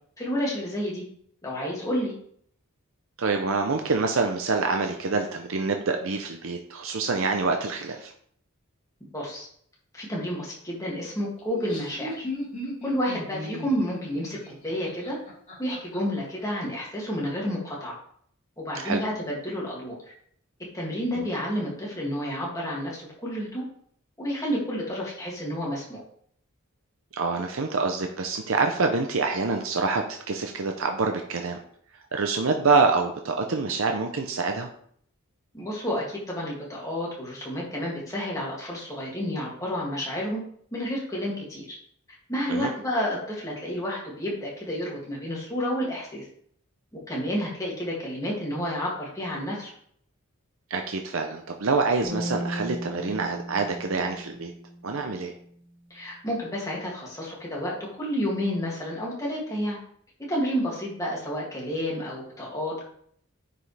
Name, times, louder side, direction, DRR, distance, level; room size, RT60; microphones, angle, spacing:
voice 1, 0.2-1.0 1.4-2.1 9.1-9.5 9.9-12.3 12.8-14.4 14.6-15.2 15.6-17.9 18.6-20.0 20.7-23.6 24.2-26.0 35.5-40.4 40.7-41.8 42.3-46.2 47.1-49.7 55.9-59.8 60.3-62.8, equal, 15° left, -4 dB, 2.5 m, -30 dB
voice 2, 3.2-8.1 18.7-19.0 27.1-31.6 32.1-34.7 42.5-42.7 50.7-54.5 54.8-55.3, right 4 dB, 65° right, 4 dB, 0.7 m, -26 dB
Laughter, 11.4-16.0, left 1 dB, 30° left, 3.7 m, -37 dB
sound 1, 52.0-55.4, equal, 20° right, 1.9 m, -36 dB
9.5 x 5.4 x 3.4 m, 0.63 s
head